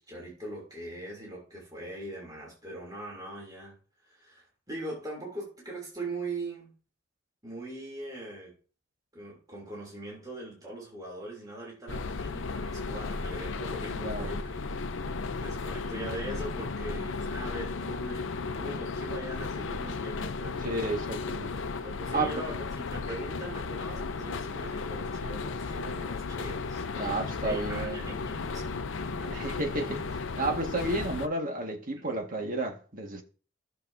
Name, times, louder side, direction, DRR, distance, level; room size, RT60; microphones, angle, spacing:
voice 1, 0.0-3.8 4.0-6.7 7.4-8.5 9.1-14.6 14.9-20.7 21.8-29.5 31.9-32.2, right 1 dB, 20° right, 3.0 m, -41 dB
sound 1, 11.9-31.3, left 4 dB, 80° left, 0.6 m, -35 dB
voice 2, 20.6-21.6 22.1-22.6 27.0-28.0 29.3-33.2, right 2 dB, 45° right, 1.7 m, -32 dB
15.5 x 6.7 x 2.7 m
head